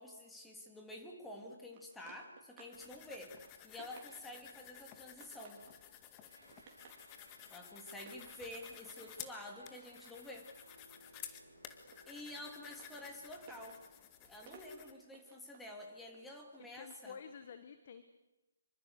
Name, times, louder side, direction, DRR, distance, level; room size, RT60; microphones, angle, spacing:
voice 1, 0.0-3.3 3.6-5.6 7.5-10.5 12.1-13.8 14.3-17.2, left 1 dB, 5° left, 1 dB, 3.3 m, -49 dB
sound 1, 1.7-2.9 3.2-4.5 4.9-5.8 6.2-7.1 7.9-10.9 11.2-17.3, right 5 dB, 30° right, 4.3 m, -61 dB
sound 2, 2.7-14.9, left 10 dB, 20° left, 1.9 m, -54 dB
AC style E B D chords, 6.3-13.8, right 1 dB, 85° right, 3.2 m, -63 dB
voice 2, 16.8-18.0, left 7 dB, 40° left, 10 dB, 1.5 m, -50 dB
26.5 x 25.0 x 6.7 m, 1.0 s
figure-of-eight pair, 140°, 0 cm